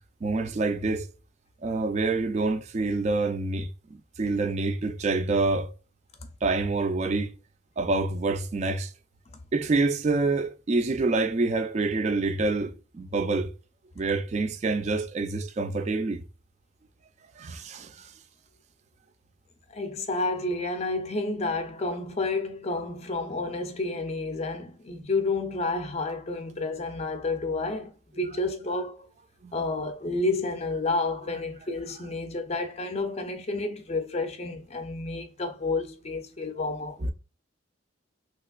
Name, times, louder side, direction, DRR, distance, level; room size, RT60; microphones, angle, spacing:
voice 1, 0.2-1.1 1.6-5.7 6.4-7.4 7.8-8.9 9.5-13.5 14.0-16.2 17.4-18.1 29.4-29.6 37.0-37.1, right 3 dB, 35° right, 0.3 m, -27 dB
voice 2, 19.7-27.9 28.2-29.0 29.5-37.0, left 3 dB, 30° left, 0.5 m, -30 dB
3.2 x 2.9 x 2.3 m
head